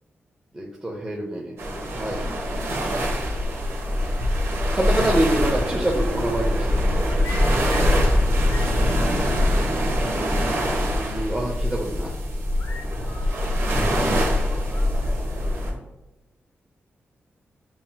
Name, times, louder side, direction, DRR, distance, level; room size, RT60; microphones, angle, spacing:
voice 1, 0.5-1.6 1.8-2.2 4.7-7.0 10.8-12.1, right 1 dB, 15° right, -2 dB, 0.6 m, -26 dB
sound 1, 1.6-15.7, left 1 dB, 75° right, 1.1 m, -23 dB
sound 2, 6.8-8.2 8.5-8.7 8.9-9.8 10.2-10.3 10.6-10.8 12.6-14.0 14.3-15.0, left 4 dB, 80° left, 0.9 m, -42 dB
voice 2, 7.7-10.3 13.5-15.9, right 2 dB, 40° right, -1 dB, 1.3 m, -44 dB
7.2 x 2.8 x 2.2 m, 0.99 s
wide cardioid pair, 150°, 4 cm